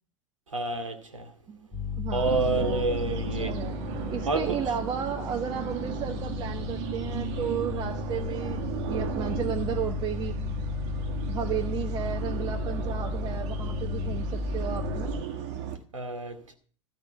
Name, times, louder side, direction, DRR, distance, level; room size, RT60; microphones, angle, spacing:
voice 1, 0.5-1.3 2.1-3.5 4.3-4.6 15.9-16.5, right 3 dB, 75° right, 1.5 m, -29 dB
sound 1, 1.7-15.2, left 5 dB, 10° left, 4.2 m, -34 dB
voice 2, 2.0-3.8 4.1-8.6 8.9-10.4 11.3-15.1, right 8 dB, 25° right, 1.0 m, -33 dB
sound 2, 2.2-15.8, right 8 dB, 45° right, 1.6 m, -36 dB
13.5 x 5.3 x 8.1 m
figure-of-eight pair, 90°, 16 cm